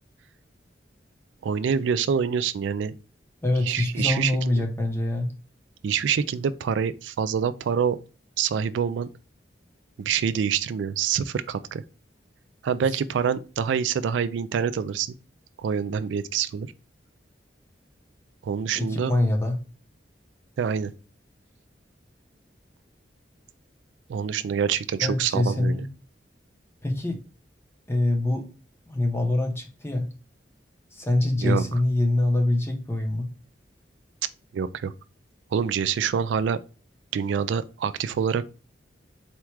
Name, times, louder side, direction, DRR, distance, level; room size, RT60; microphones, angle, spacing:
voice 1, 1.4-2.9 3.7-4.3 5.8-8.0 8.4-9.1 10.0-11.8 12.6-15.1 15.6-16.7 18.4-19.1 20.6-20.9 24.1-25.8 31.4-31.6 34.5-34.9 35.5-36.6 37.1-38.4, right 7 dB, 80° right, 0.3 m, -26 dB
voice 2, 3.4-5.3 18.7-19.6 25.0-25.9 26.8-27.2 27.9-28.5 28.9-30.1 30.9-33.3, left 1 dB, 15° left, 0.7 m, -24 dB
4.3 x 2.4 x 4.5 m
head